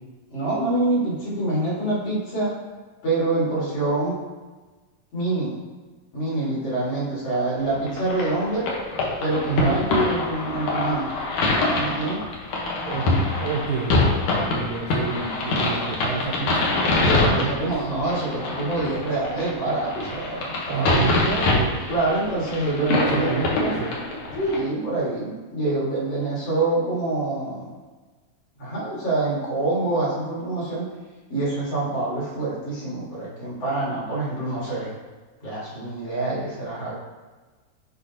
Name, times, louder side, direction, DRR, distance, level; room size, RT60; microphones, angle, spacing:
voice 1, 0.3-2.5 3.0-4.2 5.1-5.6 6.1-8.7 9.2-11.1 11.7-12.2 17.0-21.1 21.9-23.4 24.3-27.7 28.6-30.9 31.3-34.9 35.4-36.9, right 2 dB, 50° left, -7 dB, 2.6 m, -26 dB
sound 1, 7.9-24.6, left 2 dB, 65° left, 2.2 m, -25 dB
voice 2, 9.5-9.8 12.9-16.8 17.2-17.7 20.7-21.8 22.8-24.0, right 5 dB, 85° right, 0 dB, 1.7 m, -29 dB
10.0 x 3.9 x 2.8 m, 1.3 s
omnidirectional pair, 4.0 m